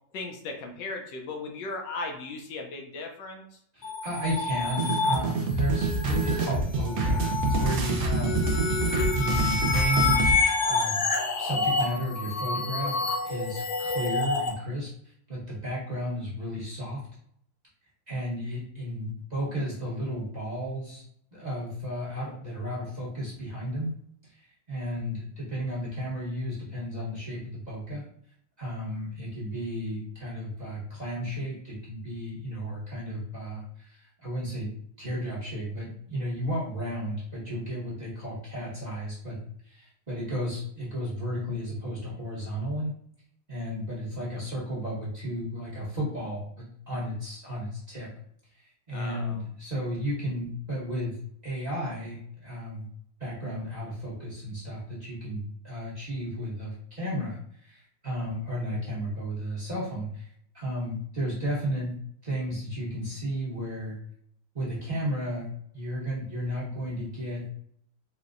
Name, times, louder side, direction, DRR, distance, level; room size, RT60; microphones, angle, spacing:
voice 1, 0.1-3.6 48.9-49.4, left 3 dB, 80° left, 3 dB, 1.2 m, -37 dB
voice 2, 3.7-8.4 9.1-10.2 10.6-11.0 11.4-14.9 15.3-17.0 18.1-21.0 21.3-23.9 24.3-28.0 28.6-34.7 35.0-42.9 43.5-48.1 48.5-51.2 51.4-52.8 53.2-60.3 60.5-62.0 62.2-64.0 64.5-67.5, equal, 35° right, -8 dB, 0.7 m, -33 dB
sound 1, 3.8-14.5, left 3 dB, 60° left, 1.2 m, -28 dB
sound 2, 4.8-10.3, right 2 dB, 70° right, 0.8 m, -26 dB
4.2 x 2.1 x 2.4 m, 0.66 s
omnidirectional pair, 2.0 m